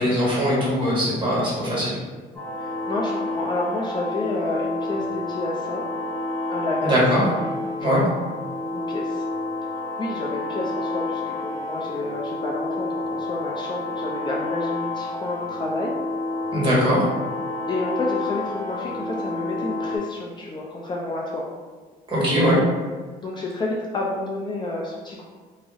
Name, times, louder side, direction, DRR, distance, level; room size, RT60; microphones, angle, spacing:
voice 1, 0.0-1.9 6.8-7.2 7.8-8.0 16.5-17.0 22.1-22.6, equal, 30° right, -6 dB, 1.3 m, -21 dB
sound 1, 2.3-20.0, left 2 dB, 10° left, 1.4 m, -29 dB
voice 2, 2.6-5.8 6.5-7.0 7.8-8.0 8.7-9.2 10.0-15.9 17.7-21.4 23.2-25.2, left 2 dB, 25° left, -3 dB, 0.4 m, -29 dB
2.4 x 2.0 x 3.6 m, 1.4 s
cardioid pair, 110°, 17 cm